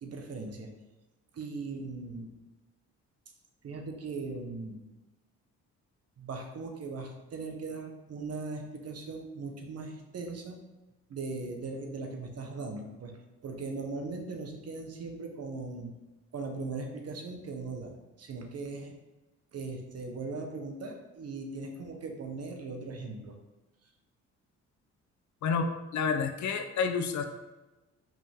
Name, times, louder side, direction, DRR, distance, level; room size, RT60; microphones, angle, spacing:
voice 1, 0.0-0.7 1.3-2.3 3.6-4.8 6.2-10.6 11.1-13.1 13.4-15.9 16.3-19.0 19.5-23.3, right 3 dB, 55° right, 3 dB, 1.2 m, -39 dB
voice 2, 25.4-27.2, left 5 dB, 70° left, 6 dB, 0.8 m, -29 dB
5.4 x 5.2 x 3.7 m, 1.1 s
cardioid pair, 90°, 30 cm